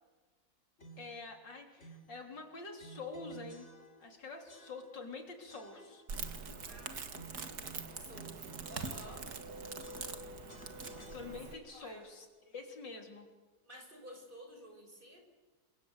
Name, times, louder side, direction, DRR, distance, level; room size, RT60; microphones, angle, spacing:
sound 1, 0.8-1.2 1.8-2.2 2.8-4.2 4.5-5.1 5.5-6.6 7.1-9.5 9.8-11.7, right 3 dB, 40° left, 3.6 m, -55 dB
voice 1, 1.0-3.7 4.0-6.0 11.0-13.3, left 3 dB, 75° left, 4 dB, 4.1 m, -47 dB
Crackle, 6.1-11.5, right 4 dB, 60° right, 2.3 m, -43 dB
voice 2, 6.7-7.2 7.6-9.3 11.5-12.0 13.6-15.2, equal, 25° right, 3 dB, 5.8 m, -53 dB
27.5 x 24.0 x 8.0 m, 1.3 s
omnidirectional pair, 2.0 m